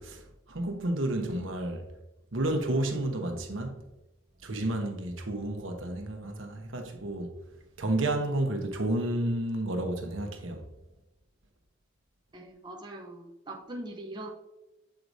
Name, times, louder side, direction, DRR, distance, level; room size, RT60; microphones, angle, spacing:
voice 1, 0.0-1.9 2.3-3.9 4.4-7.4 7.8-10.6, right 1 dB, 75° right, 1.0 m, -31 dB
voice 2, 12.3-14.3, right 1 dB, 20° right, 0.6 m, -41 dB
7.6 x 4.7 x 2.6 m
head